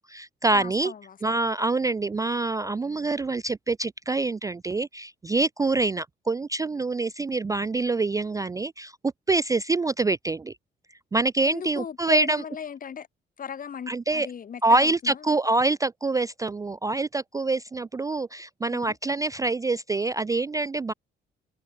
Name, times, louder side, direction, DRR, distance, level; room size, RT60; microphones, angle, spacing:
voice 1, 0.0-0.9 1.2-10.5 11.1-12.4 13.9-14.3 14.6-20.9, right 3 dB, 15° right, 0.3 m, -25 dB
voice 2, 0.5-1.4 11.4-13.1 13.4-15.4 18.7-19.0, left 7 dB, 45° left, 1.3 m, -37 dB
cardioid pair, 90°, 20 cm